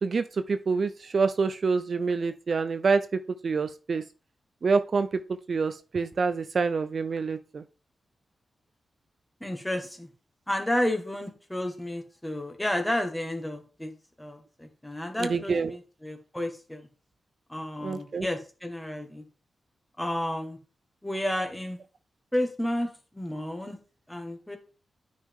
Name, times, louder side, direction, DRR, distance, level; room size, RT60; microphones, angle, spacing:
voice 1, 0.0-3.0 3.4-4.0 4.6-5.2 5.5-7.6 15.2-15.7 17.8-18.3, right 4 dB, 50° right, 10 dB, 0.5 m, -26 dB
voice 2, 9.4-10.1 10.5-13.9 14.2-16.9 17.5-19.2 20.0-20.6 21.0-21.8 22.3-23.8 24.1-24.6, left 1 dB, 10° left, 4 dB, 1.8 m, -31 dB
9.6 x 5.3 x 3.6 m, 0.35 s
wide cardioid pair, 105°, 0 cm